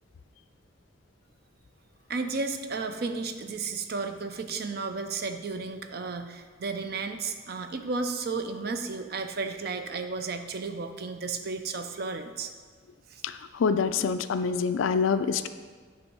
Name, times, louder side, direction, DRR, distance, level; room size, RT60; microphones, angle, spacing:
voice 1, 2.1-12.5 13.1-13.2, right 4 dB, 55° right, 7 dB, 0.5 m, -33 dB
voice 2, 13.2-15.5, left 5 dB, 90° left, 11 dB, 0.4 m, -26 dB
8.9 x 3.5 x 5.4 m, 1.5 s
head